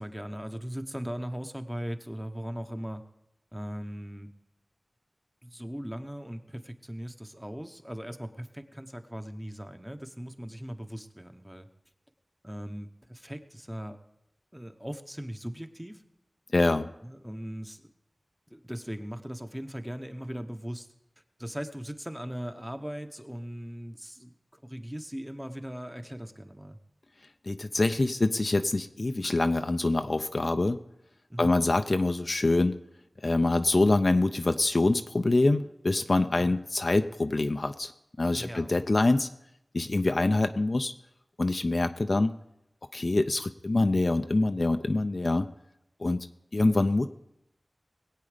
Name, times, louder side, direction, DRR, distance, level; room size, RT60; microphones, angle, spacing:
voice 1, 0.0-3.0 3.5-4.3 5.4-11.7 12.4-14.0 14.5-16.0 17.0-17.9 18.5-20.9 21.4-26.8 31.3-31.6 38.3-38.7, equal, 5° right, 7 dB, 1.0 m, -39 dB
voice 2, 16.5-16.9 27.5-30.8 31.4-32.8 33.2-37.9 38.2-39.3 39.7-40.9 41.4-42.3 42.9-45.5 46.0-46.3 46.5-47.1, left 2 dB, 50° left, 8 dB, 0.6 m, -25 dB
20.0 x 8.4 x 5.1 m, 0.83 s
wide cardioid pair, 65°, 0 cm